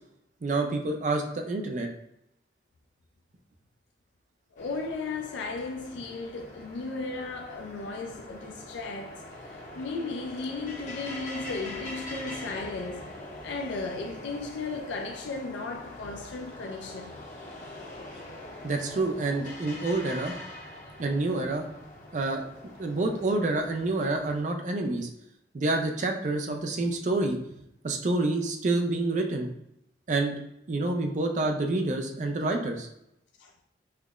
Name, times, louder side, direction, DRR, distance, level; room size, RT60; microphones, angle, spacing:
voice 1, 0.4-1.9 18.6-20.3 21.0-21.7 22.1-22.5 22.8-25.1 25.5-27.4 27.8-29.5 30.1-30.3 30.7-32.9, right 2 dB, 40° right, 0.4 m, -28 dB
voice 2, 4.6-13.1 13.4-17.1 33.4-33.5, left 3 dB, 85° left, 0.3 m, -35 dB
sound 1, 4.6-24.4, left 1 dB, 45° left, 0.8 m, -44 dB
5.6 x 2.0 x 2.3 m
head